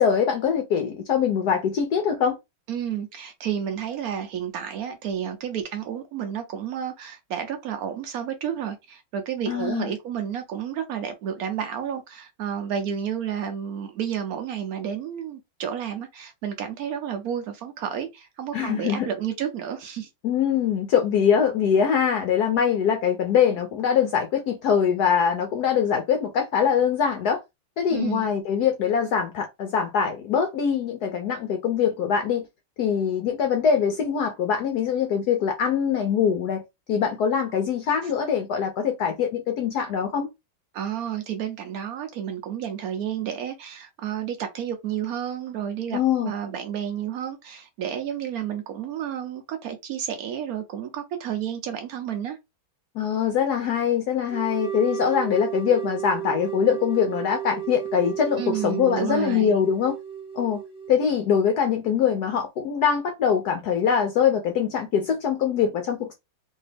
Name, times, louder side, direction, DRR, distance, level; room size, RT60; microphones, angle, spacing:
voice 1, 0.0-2.4 9.5-9.9 18.5-19.1 20.2-27.4 27.8-32.5 32.8-36.6 36.9-40.3 45.9-46.3 52.9-60.0 60.4-60.6 60.9-66.1, left 7 dB, 75° left, 0.9 m, -23 dB
voice 2, 2.7-20.1 27.9-28.3 38.0-38.1 40.7-52.4 58.4-59.6, right 9 dB, 85° right, 0.8 m, -31 dB
sound 1, 54.3-61.1, right 10 dB, 5° right, 0.5 m, -33 dB
3.2 x 2.7 x 3.3 m
omnidirectional pair, 2.3 m